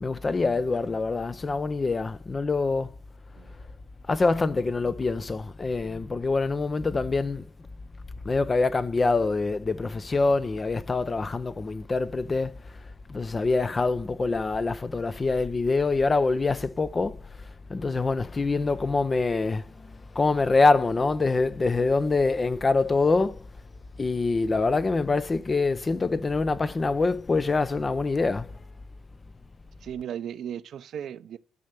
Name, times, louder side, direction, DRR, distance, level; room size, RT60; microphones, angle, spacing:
voice 1, 0.0-2.9 4.1-7.5 8.2-12.8 13.1-23.5 24.0-28.6, left 3 dB, 30° left, 0.7 m, -25 dB
voice 2, 29.8-31.4, right 9 dB, 65° right, 0.7 m, -36 dB
12.0 x 5.4 x 7.6 m
cardioid pair, 90°, 0 cm